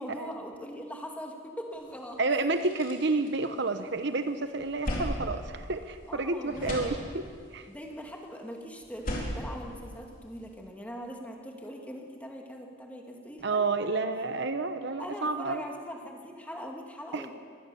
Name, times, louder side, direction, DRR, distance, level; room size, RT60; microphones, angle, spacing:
voice 1, 0.0-2.2 6.1-6.9 7.7-14.0 15.0-17.3, equal, 5° left, 1 dB, 2.3 m, -41 dB
sound 1, 1.9-2.0 2.3-4.0 4.4-6.2 6.5-7.5 8.8-10.5, equal, 45° left, 4.6 m, -37 dB
voice 2, 2.2-7.2 7.5-7.7 13.4-15.6 17.1-17.3, right 3 dB, 60° right, 9 dB, 1.0 m, -30 dB
23.5 x 19.0 x 7.1 m, 2.2 s
head